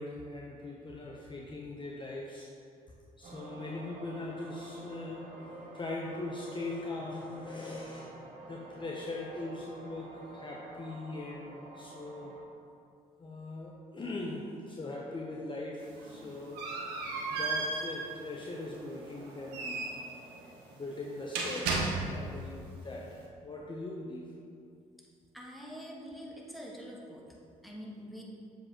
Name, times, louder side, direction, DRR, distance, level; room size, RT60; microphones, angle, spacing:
voice 1, 0.0-2.5 3.2-8.1 8.4-12.3 13.2-16.6 17.3-19.9 20.8-24.3, left 2 dB, 30° left, -2 dB, 0.7 m, -41 dB
sound 1, 3.2-12.4, right 2 dB, 50° right, 1.1 m, -49 dB
sound 2, 15.8-22.4, right 3 dB, 75° right, 0.9 m, -36 dB
voice 2, 25.3-27.2 27.6-28.2, equal, ahead, -3 dB, 1.4 m, -45 dB
7.0 x 5.3 x 2.9 m, 2.4 s
hypercardioid pair, 50°, 17 cm